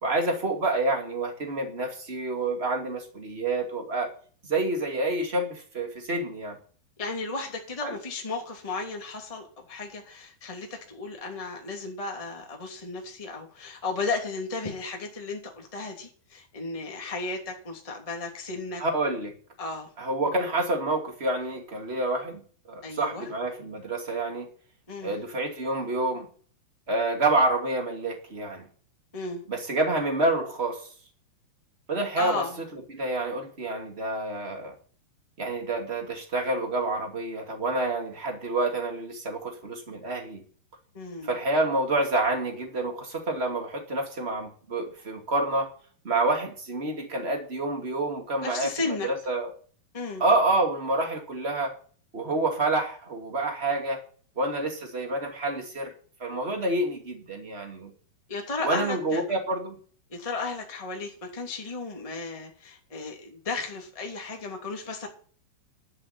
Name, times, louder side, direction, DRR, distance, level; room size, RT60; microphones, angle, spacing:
voice 1, 0.0-4.1 4.5-6.6 7.8-8.0 18.8-19.3 20.0-22.4 22.7-24.5 25.0-26.3 26.9-28.7 29.5-30.8 31.9-32.4 32.9-34.8 35.4-40.4 41.2-45.7 46.0-49.5 50.2-51.7 52.1-54.0 54.4-55.9 56.2-57.9 58.6-59.8, right 2 dB, 20° right, 3 dB, 2.2 m, -28 dB
voice 2, 7.0-18.8 19.6-19.9 22.8-23.3 24.9-25.2 29.1-29.4 32.2-32.6 40.9-41.3 48.4-49.1 49.9-50.2 58.3-59.2 60.1-65.1, left 3 dB, 10° left, 1 dB, 2.1 m, -34 dB
12.0 x 6.3 x 8.8 m, 0.43 s
omnidirectional pair, 4.6 m